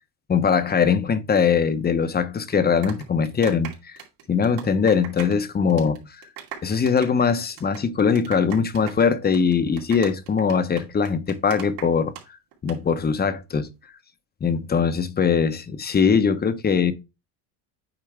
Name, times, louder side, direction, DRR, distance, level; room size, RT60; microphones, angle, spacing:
voice 1, 0.3-4.0 4.3-6.1 6.6-12.1 12.6-13.7 14.4-16.9, left 6 dB, 20° left, 0.8 m, -21 dB
sound 1, 2.5-5.4 5.7-6.0 6.2-12.2 12.5-12.8, right 10 dB, 75° right, 2.7 m, -39 dB
8.8 x 4.4 x 3.3 m
supercardioid pair, 105°, 46 cm